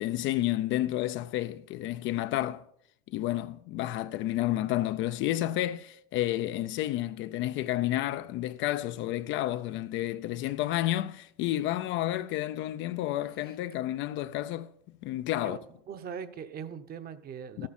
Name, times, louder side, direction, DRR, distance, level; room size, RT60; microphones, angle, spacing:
voice 1, 0.0-2.6 3.1-14.7 15.0-15.6 17.6-17.7, left 14 dB, 40° left, 0.4 m, -30 dB
voice 2, 15.9-17.7, right 7 dB, 30° right, 0.9 m, -40 dB
13.5 x 11.5 x 4.2 m
supercardioid pair, 130°, 31 cm